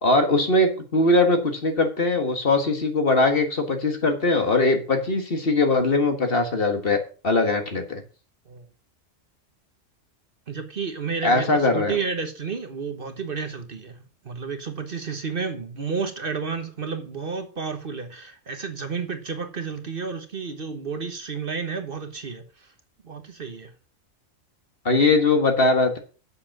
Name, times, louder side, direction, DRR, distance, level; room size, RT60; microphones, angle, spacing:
voice 1, 0.0-8.0 11.2-12.0 24.8-26.0, left 2 dB, 50° left, 1.8 m, -21 dB
voice 2, 10.5-22.4 23.0-23.7, right 5 dB, 50° right, 1.2 m, -31 dB
7.7 x 6.8 x 5.9 m
omnidirectional pair, 1.3 m